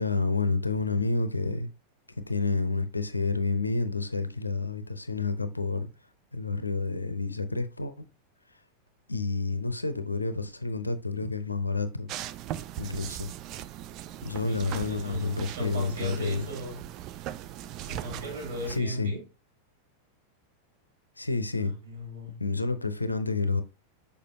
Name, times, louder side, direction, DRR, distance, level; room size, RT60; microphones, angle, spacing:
voice 1, 0.0-1.7 2.3-5.9 6.3-8.1 9.1-12.1 12.8-13.3 14.2-16.5 18.7-19.1 21.2-21.7 22.4-23.6, left 3 dB, 80° left, 0.6 m, -29 dB
sound 1, 12.1-18.8, right 12 dB, 40° right, 0.4 m, -39 dB
voice 2, 14.5-16.8 17.8-19.2 21.6-22.4, equal, 60° right, 3.6 m, -38 dB
6.6 x 5.2 x 2.7 m
figure-of-eight pair, 90°, 0 cm